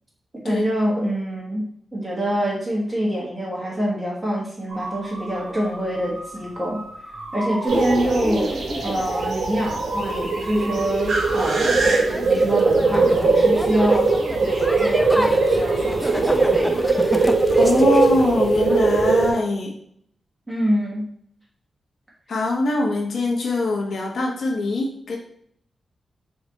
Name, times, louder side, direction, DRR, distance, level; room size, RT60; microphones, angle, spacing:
voice 1, 0.4-6.8 7.3-8.5 8.8-17.0 20.5-21.0, equal, 20° right, -5 dB, 1.3 m, -26 dB
sound 1, 4.7-16.6, right 2 dB, 60° right, 1.4 m, -36 dB
sound 2, 7.7-19.1, equal, 5° left, 0.4 m, -31 dB
sound 3, 7.7-19.3, right 3 dB, 75° right, 1.1 m, -20 dB
voice 2, 17.6-19.7 22.3-25.2, left 2 dB, 70° left, -1 dB, 1.2 m, -23 dB
4.9 x 2.6 x 4.1 m, 0.66 s
wide cardioid pair, 100°, 0 cm